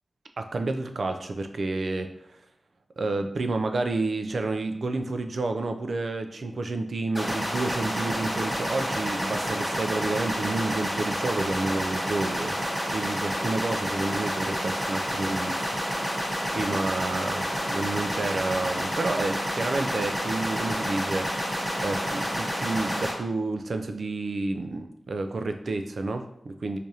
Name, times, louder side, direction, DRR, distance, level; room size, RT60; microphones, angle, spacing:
voice 1, 0.4-2.1 3.0-12.6 12.9-15.7 15.9-21.5 21.8-26.8, right 2 dB, 65° right, 6 dB, 0.3 m, -30 dB
sound 1, 7.1-23.1, equal, 5° right, 0.9 m, -29 dB
4.6 x 2.5 x 2.7 m, 0.76 s
wide cardioid pair, 115°, 0 cm